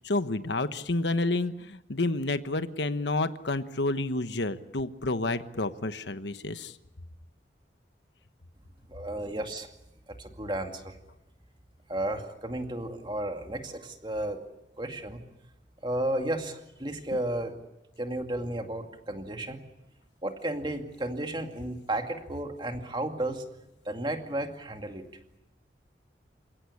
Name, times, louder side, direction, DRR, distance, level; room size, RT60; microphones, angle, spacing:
voice 1, 0.0-6.7, left 2 dB, 80° left, 11 dB, 1.2 m, -29 dB
voice 2, 8.9-9.7 10.2-11.0 11.9-14.4 14.8-15.2 15.8-17.5 18.0-19.6 20.2-23.4 23.9-25.0, right 1 dB, 25° right, 5 dB, 2.3 m, -33 dB
28.5 x 17.0 x 9.9 m, 0.92 s
head